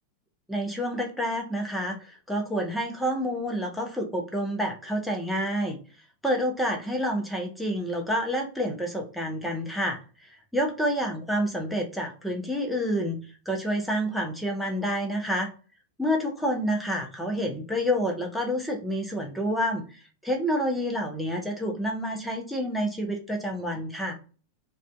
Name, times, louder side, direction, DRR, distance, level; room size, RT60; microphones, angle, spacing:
voice 1, 0.5-5.8 6.2-13.2 13.5-15.5 16.0-24.1, equal, ahead, 1 dB, 0.6 m, -28 dB
2.4 x 2.2 x 2.3 m, 0.37 s
figure-of-eight pair, 90°, 0 cm